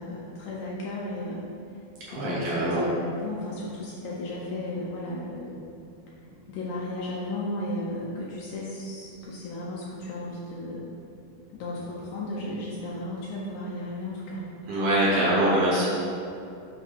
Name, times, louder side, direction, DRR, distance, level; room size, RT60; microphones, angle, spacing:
voice 1, 0.0-1.8 2.1-5.7 6.5-10.9 11.5-14.5, left 1 dB, 75° left, -5 dB, 2.0 m, -35 dB
voice 2, 2.1-2.8 14.7-15.9, right 1 dB, 65° right, -7 dB, 1.4 m, -23 dB
7.6 x 2.8 x 4.9 m, 2.6 s
omnidirectional pair, 4.0 m